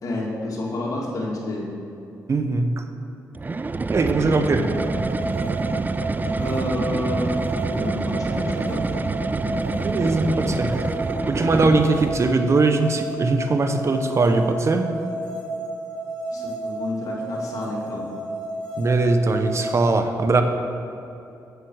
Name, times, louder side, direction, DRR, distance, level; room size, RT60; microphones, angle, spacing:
voice 1, 0.0-1.7 6.3-8.9 16.3-18.0, left 1 dB, 55° left, -3 dB, 2.5 m, -29 dB
voice 2, 2.3-2.9 3.9-4.7 9.8-10.8 11.3-14.9 18.8-20.4, right 3 dB, 45° right, 7 dB, 0.8 m, -21 dB
sound 1, 3.3-12.5, right 3 dB, 25° right, 0.4 m, -26 dB
sound 2, 4.7-19.9, right 2 dB, 15° left, 2.5 m, -32 dB
8.4 x 8.1 x 6.3 m, 2.8 s
cardioid pair, 65°, 7 cm